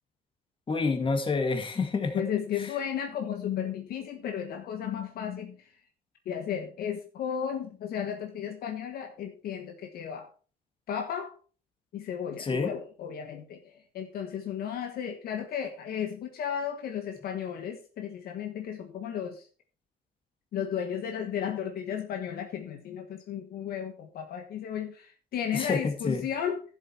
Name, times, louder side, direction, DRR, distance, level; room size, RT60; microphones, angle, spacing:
voice 1, 0.7-2.2 12.4-12.7 25.5-26.2, left 4 dB, 30° left, 5 dB, 2.1 m, -28 dB
voice 2, 2.1-5.7 6.2-10.3 10.9-11.4 11.9-19.5 20.5-26.6, left 8 dB, 65° left, 5 dB, 1.4 m, -34 dB
11.5 x 7.6 x 4.4 m, 0.38 s
cardioid pair, 110°, 17 cm